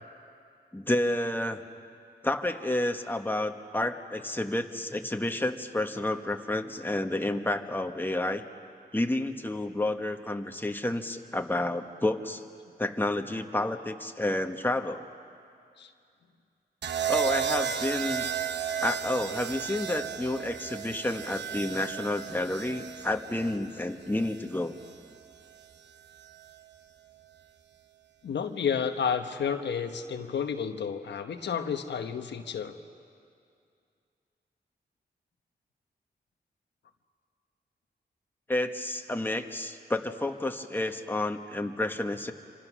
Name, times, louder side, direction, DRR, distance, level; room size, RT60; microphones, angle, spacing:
voice 1, 0.7-1.6 2.2-8.4 8.9-12.4 12.8-15.0 17.1-18.2 18.8-24.7 38.5-42.3, left 1 dB, 10° left, 5 dB, 1.5 m, -30 dB
sound 1, 16.8-24.9 26.2-26.5, right 8 dB, 85° right, 1.0 m, -34 dB
voice 2, 28.2-32.8, left 7 dB, 90° left, 6 dB, 1.1 m, -31 dB
26.5 x 26.0 x 6.2 m, 2.4 s
cardioid pair, 65°, 18 cm